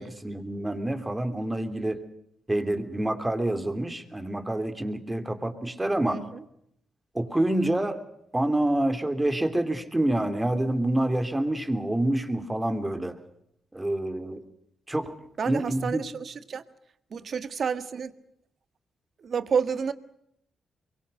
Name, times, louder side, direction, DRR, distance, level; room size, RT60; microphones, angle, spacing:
voice 1, 0.0-2.0 2.5-6.2 7.1-8.0 8.3-13.2 13.7-14.4 14.9-15.2 15.5-16.0, right 1 dB, 15° right, 3.2 m, -27 dB
voice 2, 6.1-6.4 15.4-16.6 17.1-18.1 19.2-19.9, right 6 dB, 60° right, 1.6 m, -29 dB
23.5 x 23.0 x 6.6 m
cardioid pair, 75°, 0 cm